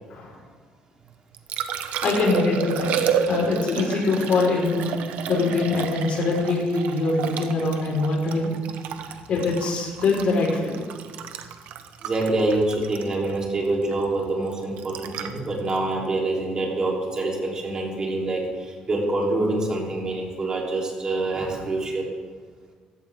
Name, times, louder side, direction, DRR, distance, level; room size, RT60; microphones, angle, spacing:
Liquid, 1.1-17.2 20.0-20.1, right 8 dB, 75° right, 1.1 m, -31 dB
voice 1, 2.0-4.9 5.3-8.5 9.3-10.7, left 3 dB, 50° left, -2 dB, 4.8 m, -23 dB
voice 2, 12.0-22.1, right 2 dB, 30° right, -2 dB, 3.7 m, -26 dB
16.0 x 15.5 x 3.8 m, 1.5 s
cardioid pair, 130°, 3 cm